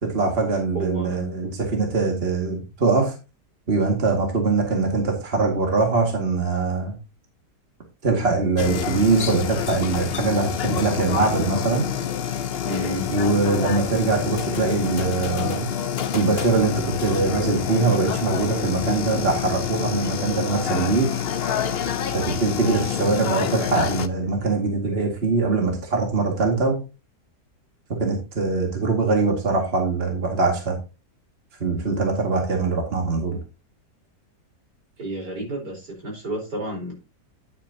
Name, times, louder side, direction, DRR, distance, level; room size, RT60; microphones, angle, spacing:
voice 1, 0.0-3.1 3.7-7.0 8.0-11.9 13.1-15.7 16.1-21.2 22.1-26.8 28.0-30.8 31.6-33.4, right 3 dB, 35° right, 1 dB, 2.4 m, -22 dB
voice 2, 0.7-1.2 12.6-13.0 35.0-36.9, right 1 dB, 80° right, -1 dB, 5.1 m, -30 dB
sound 1, 8.6-24.1, left 8 dB, 55° left, 0.7 m, -27 dB
10.0 x 9.0 x 2.8 m, 0.29 s
omnidirectional pair, 1.8 m